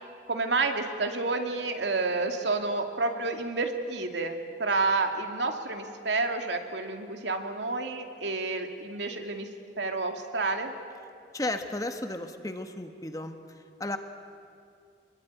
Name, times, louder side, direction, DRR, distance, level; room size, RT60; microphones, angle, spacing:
voice 1, 0.3-9.5 9.8-10.7, right 3 dB, 85° right, 5 dB, 2.4 m, -29 dB
voice 2, 11.3-14.0, left 1 dB, 20° left, 7 dB, 1.3 m, -34 dB
26.0 x 21.5 x 9.5 m, 2.3 s
head